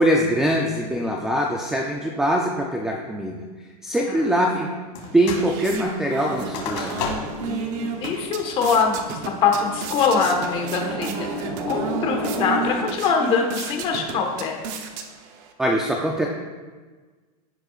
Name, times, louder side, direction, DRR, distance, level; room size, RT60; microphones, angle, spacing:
voice 1, 0.0-4.7 5.1-7.0 15.6-16.3, equal, 5° right, 0 dB, 0.4 m, -23 dB
sound 1, 4.9-5.5 5.8-7.5 7.9-8.0 8.5-8.9 9.4-9.9, left 5 dB, 50° left, 2.3 m, -33 dB
sound 2, 5.0-15.5, right 5 dB, 40° right, 0.9 m, -33 dB
sound 3, 6.2-12.7, equal, 75° right, 2.5 m, -34 dB
voice 2, 7.4-14.6, left 5 dB, 25° left, 2 dB, 1.4 m, -23 dB
16.5 x 6.5 x 2.4 m, 1.4 s
supercardioid pair, 160°, 20 cm